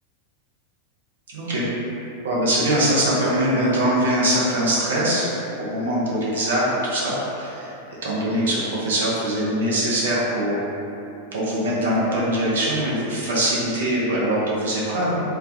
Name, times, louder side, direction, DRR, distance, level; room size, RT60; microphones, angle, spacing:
voice 1, 1.3-1.6 2.2-5.3 5.6-7.7 8.0-10.6 11.3-15.2, right 1 dB, 65° right, -6 dB, 0.5 m, -22 dB
2.3 x 2.2 x 3.5 m, 2.9 s
figure-of-eight pair, 90°, 0 cm